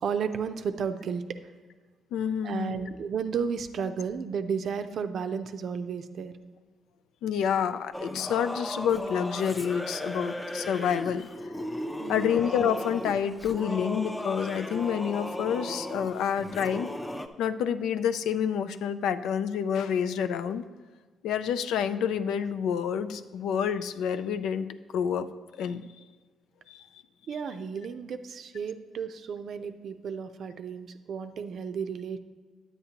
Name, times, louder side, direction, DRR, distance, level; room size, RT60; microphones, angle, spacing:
voice 1, 0.0-1.2 2.4-6.3 12.0-12.3 27.3-32.2, right 6 dB, 60° right, 9 dB, 0.5 m, -33 dB
voice 2, 2.1-2.8 7.2-11.5 12.1-16.9 17.4-20.6 21.2-24.7 24.9-25.3 25.5-25.9 26.7-26.8, left 8 dB, 85° left, 10 dB, 0.4 m, -28 dB
Singing / Musical instrument, 7.9-17.3, left 1 dB, 10° left, 0.5 m, -36 dB
9.5 x 8.2 x 2.9 m, 1.5 s
cardioid pair, 90°, 0 cm